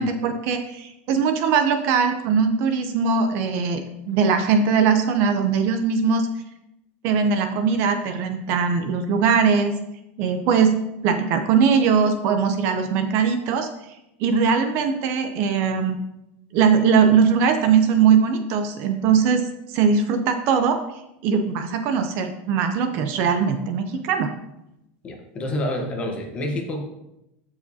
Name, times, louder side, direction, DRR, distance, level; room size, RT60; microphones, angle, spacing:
voice 1, 0.0-6.3 7.0-9.7 10.2-10.8 11.0-13.7 14.2-16.0 16.5-20.8 21.2-24.3, right 6 dB, 40° right, 7 dB, 0.6 m, -20 dB
voice 2, 25.0-26.8, left 1 dB, 20° left, 3 dB, 1.0 m, -28 dB
13.5 x 4.8 x 2.8 m, 0.87 s
supercardioid pair, 180°, 6 cm